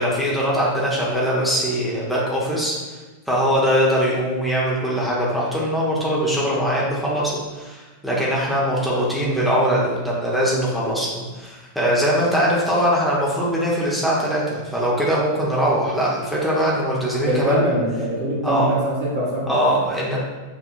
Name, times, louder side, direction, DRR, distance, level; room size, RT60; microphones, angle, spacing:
voice 1, 0.0-2.8 3.3-17.6 18.4-18.8 19.5-20.2, equal, ahead, -6 dB, 0.9 m, -21 dB
voice 2, 17.2-19.9, equal, 50° right, -4 dB, 1.2 m, -24 dB
6.2 x 2.8 x 2.4 m, 1.3 s
figure-of-eight pair, 90°, 0 cm